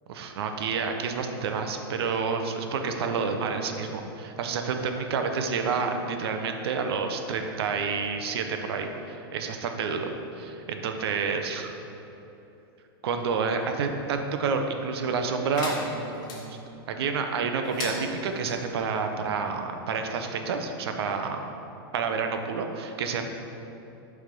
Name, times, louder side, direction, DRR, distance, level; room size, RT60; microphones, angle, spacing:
voice 1, 0.1-10.1 10.4-11.7 13.0-16.4 16.9-21.4 21.9-23.3, right 5 dB, 75° right, 5 dB, 0.7 m, -29 dB
sound 1, 15.5-16.4 17.6-18.6, left 3 dB, 30° left, 1.0 m, -36 dB
6.3 x 3.4 x 5.3 m, 3.0 s
supercardioid pair, 150°, 13 cm